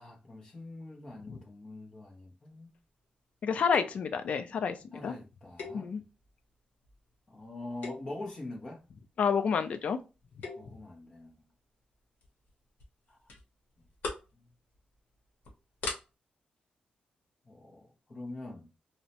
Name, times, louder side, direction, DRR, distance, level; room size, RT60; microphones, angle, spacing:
voice 1, 0.0-2.7 4.9-5.9 7.3-8.8 10.6-11.4 13.1-13.2 14.3-14.4 17.4-18.7, left 2 dB, 25° left, 0.7 m, -44 dB
voice 2, 3.4-4.8 5.0-5.1 5.7-6.0 9.2-10.0, left 6 dB, 50° left, 0.3 m, -29 dB
sound 1, 3.7-4.1 5.6-6.3 6.8-7.1 7.7-8.3 10.2-10.8 12.2-12.5 12.8-12.9 13.3-13.4 13.8-14.3 14.7-15.0 15.4-15.5 15.8-16.0, left 3 dB, 75° left, 0.8 m, -40 dB
2.7 x 2.1 x 2.7 m
wide cardioid pair, 175°, 3 cm